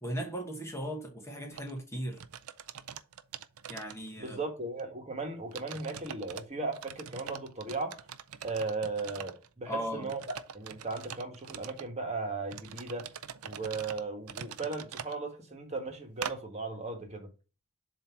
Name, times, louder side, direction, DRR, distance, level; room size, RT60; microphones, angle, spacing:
voice 1, 0.0-2.2 3.7-4.4 9.7-10.1, equal, 15° left, 1.1 m, -37 dB
sound 1, 1.5-1.7 2.1-4.4 4.8-4.9 5.5-6.4 6.7-9.5 10.0-11.9 12.5-15.2 16.2-16.4, right 8 dB, 85° right, 0.5 m, -43 dB
voice 2, 4.2-8.1 8.4-13.1 13.4-17.3, right 3 dB, 30° right, 1.4 m, -37 dB
7.5 x 2.9 x 5.7 m
head